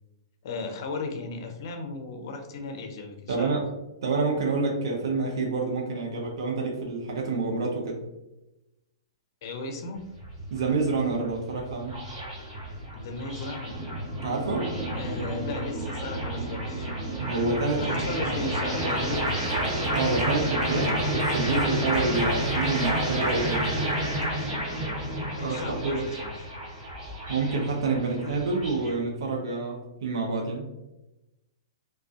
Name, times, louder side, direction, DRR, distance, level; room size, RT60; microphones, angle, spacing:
voice 1, 0.4-3.6 9.4-10.0 12.9-13.8 14.9-17.0 17.8-19.3 25.3-26.6, left 3 dB, 55° left, 5 dB, 0.5 m, -36 dB
voice 2, 3.3-3.7 4.0-8.0 10.5-12.0 14.2-14.7 17.2-18.2 19.9-23.8 25.4-26.1 27.3-30.7, right 3 dB, 70° right, 0 dB, 0.5 m, -28 dB
sound 1, 10.0-28.9, right 1 dB, 30° right, 1.0 m, -30 dB
2.3 x 2.2 x 2.4 m, 0.96 s
hypercardioid pair, 125°, 3 cm